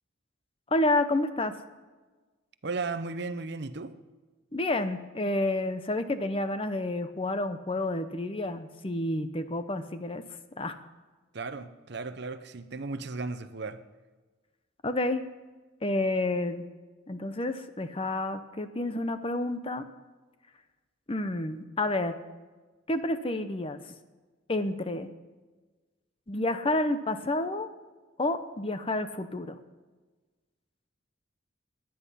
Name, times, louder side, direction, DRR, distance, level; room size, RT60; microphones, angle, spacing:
voice 1, 0.7-1.5 4.5-10.2 10.6-10.8 14.8-15.2 15.8-16.6 17.1-19.8 21.1-22.2 22.9-23.8 24.5-25.1 26.3-27.7 28.2-29.6, left 2 dB, 25° left, 0.7 m, -29 dB
voice 2, 2.6-3.9 11.3-13.8, right 3 dB, 55° right, 0.7 m, -35 dB
18.5 x 10.5 x 5.6 m
head